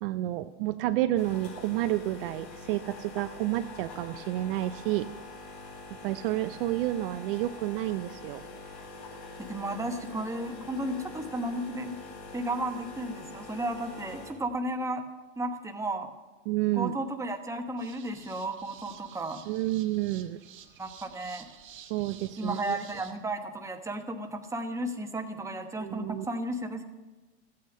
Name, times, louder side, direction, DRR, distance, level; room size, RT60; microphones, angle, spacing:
voice 1, 0.0-5.1 6.0-8.4 16.5-16.9 19.5-20.4 21.8-22.8 25.8-26.3, right 15 dB, 55° right, 10 dB, 0.5 m, -30 dB
sound 1, 1.2-14.3, left 3 dB, 70° left, 4.6 m, -45 dB
voice 2, 9.4-11.9 12.3-15.0 15.4-16.1 16.7-19.4 20.8-21.5 22.4-26.9, right 1 dB, 10° right, 5 dB, 1.1 m, -33 dB
sound 2, 17.8-23.1, right 9 dB, 35° right, 1.5 m, -51 dB
14.0 x 8.5 x 6.3 m, 1.2 s
hypercardioid pair, 100°, 34 cm